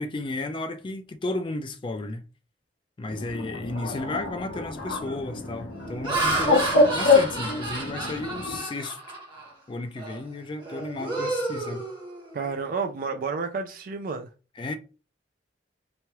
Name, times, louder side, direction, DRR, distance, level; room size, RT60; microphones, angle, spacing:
voice 1, 0.0-2.2 3.0-9.0 9.7-11.9 14.6-14.8, left 2 dB, 30° left, 0.3 m, -33 dB
Bird, 3.1-8.6, left 3 dB, 80° left, 0.9 m, -26 dB
Laughter, 3.9-4.2 4.8-5.1 5.7-9.5 10.0-10.2 10.6-12.5, right 2 dB, 25° right, 0.9 m, -31 dB
voice 2, 12.3-14.3, right 5 dB, 50° right, 0.3 m, -30 dB
3.0 x 2.3 x 2.9 m
head